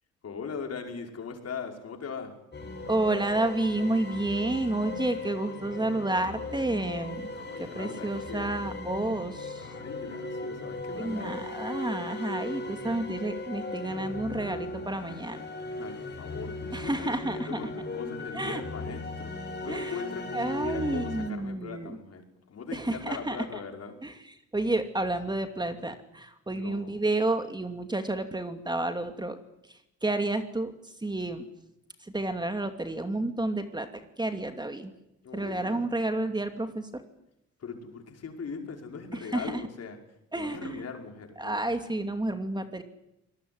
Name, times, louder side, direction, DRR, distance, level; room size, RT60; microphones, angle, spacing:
voice 1, 0.2-2.3 7.2-8.6 9.5-11.5 15.8-24.0 26.5-27.0 35.2-35.9 37.6-40.0 40.3-41.6, left 5 dB, 55° left, 3 dB, 5.6 m, -40 dB
sound 1, 2.5-21.3, left 2 dB, 35° left, 6.4 m, -38 dB
voice 2, 2.9-7.3 7.6-9.7 11.0-15.5 16.7-17.6 18.3-18.6 19.7-20.0 20.3-22.0 22.7-23.6 24.0-24.1 24.5-29.4 30.0-31.4 32.0-33.9 34.2-34.9 35.3-37.0 39.1-39.5 40.3-40.8 41.4-42.8, right 2 dB, 15° right, 7 dB, 2.6 m, -30 dB
25.5 x 20.0 x 9.7 m, 0.82 s
cardioid pair, 90°, 30 cm